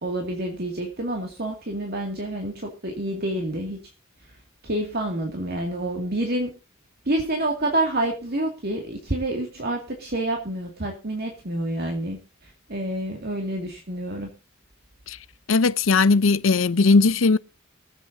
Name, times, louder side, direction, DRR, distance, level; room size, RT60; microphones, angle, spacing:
voice 1, 0.0-3.8 4.6-6.5 7.1-14.3, right 1 dB, 50° right, 2.3 m, -28 dB
voice 2, 15.5-17.4, left 4 dB, 75° left, 0.7 m, -18 dB
23.5 x 8.3 x 2.7 m
head